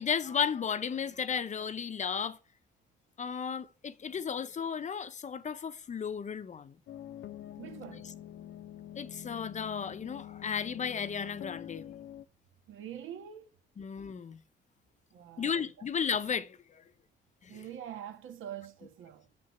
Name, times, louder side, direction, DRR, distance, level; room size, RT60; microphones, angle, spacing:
voice 1, 0.0-2.4 3.2-6.7 9.0-11.8 13.8-14.4 15.4-16.8 17.4-17.6, left 7 dB, 35° left, 0.8 m, -34 dB
sound 1, 6.9-12.3, left 11 dB, 70° left, 0.8 m, -46 dB
voice 2, 7.6-8.1 12.7-13.5 15.1-15.9 17.5-19.3, right 10 dB, 75° right, 1.7 m, -45 dB
8.7 x 6.9 x 8.0 m
cardioid pair, 135°, 20 cm